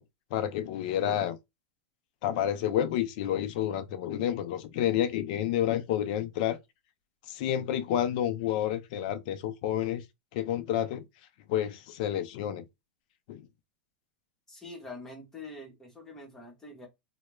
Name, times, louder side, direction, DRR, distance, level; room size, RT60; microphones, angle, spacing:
voice 1, 0.3-1.4 2.2-6.6 7.3-10.0 10.3-11.0 11.5-12.6 13.3-13.4, left 10 dB, 50° left, 0.4 m, -29 dB
voice 2, 14.5-16.9, left 2 dB, 10° left, 0.8 m, -45 dB
2.2 x 2.1 x 2.9 m
supercardioid pair, 165°, 6 cm